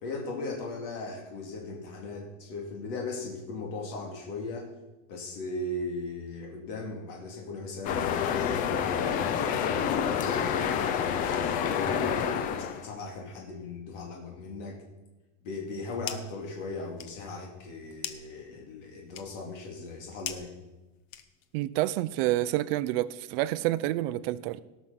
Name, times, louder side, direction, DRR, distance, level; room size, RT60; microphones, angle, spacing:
voice 1, 0.0-4.7 5.1-9.7 10.1-14.8 15.4-20.5, left 2 dB, 70° left, 0 dB, 2.5 m, -38 dB
sound 1, 7.8-12.8, left 8 dB, 25° left, 0.3 m, -28 dB
sound 2, 15.6-16.4 16.7-21.6, left 10 dB, 55° left, 1.0 m, -43 dB
voice 2, 21.5-24.6, right 15 dB, 50° right, 16 dB, 0.5 m, -28 dB
18.0 x 6.2 x 5.7 m, 1.1 s
cardioid pair, 175°, 39 cm